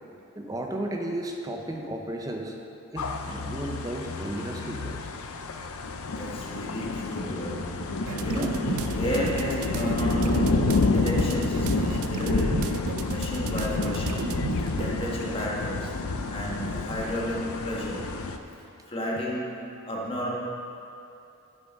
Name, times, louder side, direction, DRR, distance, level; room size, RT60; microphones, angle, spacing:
voice 1, 0.4-2.6 2.9-5.1 8.3-8.5, right 1 dB, 15° right, 2 dB, 0.7 m, -34 dB
sound 1, 3.0-18.4, left 3 dB, 75° left, 0.5 m, -29 dB
voice 2, 6.1-14.2 14.8-16.0 16.3-18.2 18.9-20.3, equal, 25° left, -3 dB, 1.3 m, -33 dB
sound 2, 8.0-15.5, right 6 dB, 75° right, 0.4 m, -35 dB
8.2 x 7.2 x 5.3 m, 2.7 s
head